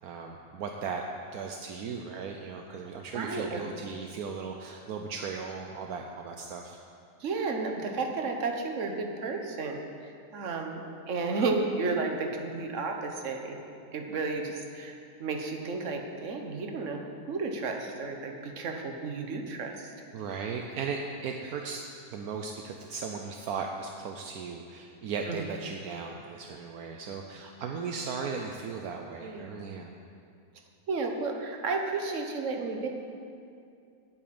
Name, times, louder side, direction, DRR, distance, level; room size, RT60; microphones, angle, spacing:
voice 1, 0.0-1.0 1.3-6.8 20.1-29.9, right 5 dB, 75° right, 3 dB, 1.2 m, -37 dB
voice 2, 3.1-3.7 7.2-13.6 13.9-19.9 25.3-25.5 29.2-29.7 30.9-32.9, right 3 dB, 55° right, 3 dB, 1.5 m, -33 dB
9.0 x 8.5 x 8.7 m, 2.5 s
omnidirectional pair, 1.6 m